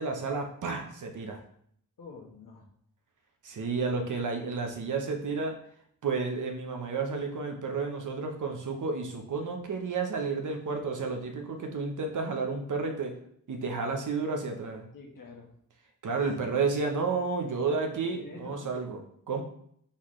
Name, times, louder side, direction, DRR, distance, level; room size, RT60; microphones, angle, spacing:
voice 1, 0.0-1.4 3.4-5.5 6.0-13.1 13.5-14.9 16.0-19.0 19.3-19.4, right 4 dB, 60° right, 3 dB, 0.9 m, -31 dB
voice 2, 2.0-2.7 14.9-15.5 17.5-18.7, left 4 dB, 70° left, -1 dB, 1.3 m, -46 dB
4.0 x 3.9 x 3.1 m, 0.67 s
cardioid pair, 50°, 34 cm